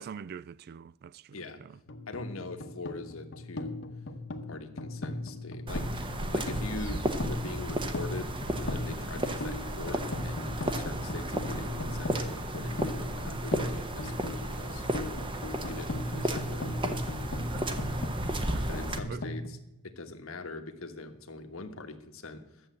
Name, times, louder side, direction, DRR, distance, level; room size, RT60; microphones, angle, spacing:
voice 1, 0.0-1.8 18.5-18.7 19.1-19.2, right 7 dB, 50° right, 0.3 m, -44 dB
sound 1, 1.9-19.5, left 1 dB, 60° left, 1.0 m, -38 dB
voice 2, 2.1-3.8 4.5-6.1 6.3-14.8 15.7-17.4 18.7-19.6 19.8-22.7, left 3 dB, 80° left, 1.3 m, -42 dB
sound 2, 5.7-19.0, right 1 dB, 25° right, 0.9 m, -34 dB
11.5 x 7.3 x 7.7 m
head